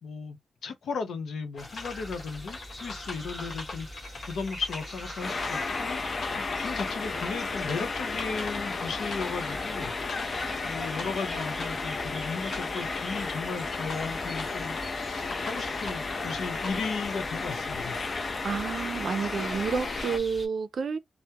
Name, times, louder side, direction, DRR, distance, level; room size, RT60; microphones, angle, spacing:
voice 1, 0.0-6.0 6.3-9.9 10.6-18.0, left 5 dB, 80° left, 0.8 m, -36 dB
sound 1, 1.6-16.9, left 3 dB, 60° left, 1.2 m, -43 dB
sound 2, 1.6-20.5, left 1 dB, 20° left, 1.3 m, -43 dB
sound 3, 5.2-20.2, left 4 dB, 40° left, 0.6 m, -33 dB
voice 2, 18.4-21.0, right 5 dB, 55° right, 0.4 m, -30 dB
3.4 x 2.1 x 2.8 m
wide cardioid pair, 150°, 0 cm